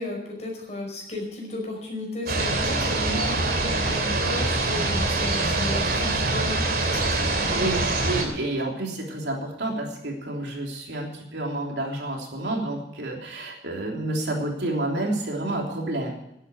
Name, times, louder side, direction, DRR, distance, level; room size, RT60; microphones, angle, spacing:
voice 1, 0.0-7.7, left 1 dB, 40° left, 0 dB, 5.2 m, -34 dB
sound 1, 2.3-8.2, right 2 dB, 55° right, 2.6 m, -24 dB
voice 2, 7.2-16.1, right 2 dB, 75° right, 0 dB, 3.4 m, -29 dB
11.5 x 9.2 x 9.7 m, 0.81 s
head